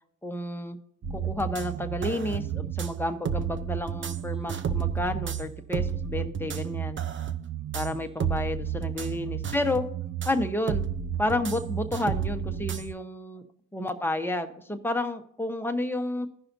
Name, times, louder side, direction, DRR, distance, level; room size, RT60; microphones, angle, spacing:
voice 1, 0.2-0.8 1.1-7.0 7.7-9.8 10.2-10.9 11.2-13.4 13.7-16.3, left 1 dB, 5° left, 5 dB, 0.9 m, -30 dB
sound 1, 1.0-12.9, right 8 dB, 40° right, 0.7 m, -31 dB
16.5 x 5.6 x 2.7 m, 0.69 s
cardioid pair, 90°, 30 cm